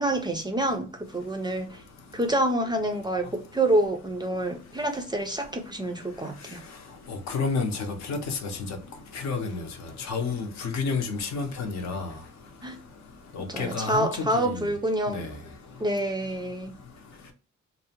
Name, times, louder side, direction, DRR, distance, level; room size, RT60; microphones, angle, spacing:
voice 1, 0.0-1.8 2.1-6.6 12.6-12.8 13.4-15.3 15.8-16.7, right 1 dB, 15° right, 0.4 m, -27 dB
voice 2, 7.1-8.4 9.2-9.6 10.1-12.1 13.4-14.6 15.1-15.3, left 4 dB, 65° left, 0.7 m, -30 dB
2.7 x 2.0 x 2.7 m
cardioid pair, 90°, 30 cm